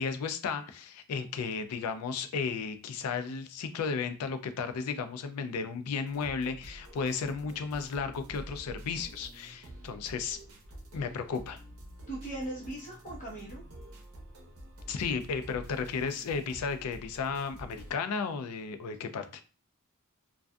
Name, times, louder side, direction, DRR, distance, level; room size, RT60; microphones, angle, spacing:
voice 1, 0.0-10.4 10.9-11.6 14.9-19.4, left 5 dB, 80° left, 0.4 m, -34 dB
sound 1, 6.1-17.9, right 1 dB, 70° right, 0.7 m, -48 dB
voice 2, 12.1-13.6, right 1 dB, 35° left, 1.0 m, -39 dB
2.5 x 2.3 x 2.2 m
head